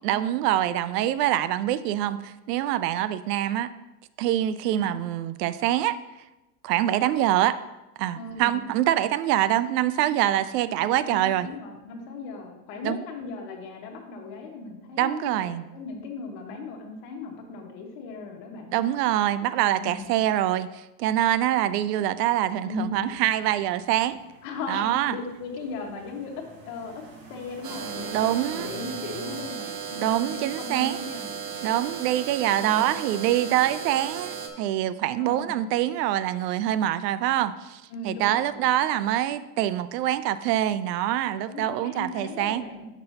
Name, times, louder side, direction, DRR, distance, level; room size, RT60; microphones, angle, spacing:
voice 1, 0.0-3.7 4.2-6.0 6.6-7.6 8.0-11.5 12.8-13.0 15.0-15.6 18.7-24.2 24.7-25.2 28.1-28.7 30.0-31.0 31.6-42.6, right 12 dB, 80° right, 14 dB, 0.6 m, -25 dB
voice 2, 4.6-5.0 8.2-8.6 10.9-18.7 19.8-20.1 22.6-23.2 24.4-27.0 27.3-31.3 32.5-33.0 35.2-35.7 37.9-38.7 41.5-42.9, left 3 dB, 55° left, 1 dB, 1.6 m, -37 dB
sound 1, 23.0-29.5, right 3 dB, 55° right, 1.7 m, -48 dB
sound 2, 27.6-34.5, right 7 dB, 20° right, 0.4 m, -35 dB
7.7 x 6.1 x 2.8 m, 1.0 s
supercardioid pair, 135°, 48 cm